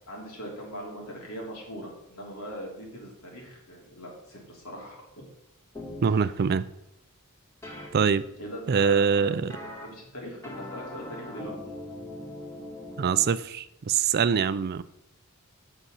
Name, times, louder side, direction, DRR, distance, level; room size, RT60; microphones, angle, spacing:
voice 1, 0.1-5.1 6.0-6.3 8.4-11.6, equal, 75° left, -2 dB, 3.1 m, -40 dB
sound 1, 5.7-6.1 7.6-7.9 9.5-9.9 10.4-13.2, left 1 dB, 15° left, 1.9 m, -40 dB
voice 2, 6.0-6.7 7.9-8.2 8.7-9.5 13.0-14.8, right 6 dB, 45° right, 15 dB, 0.4 m, -24 dB
8.3 x 6.7 x 5.6 m, 0.84 s
head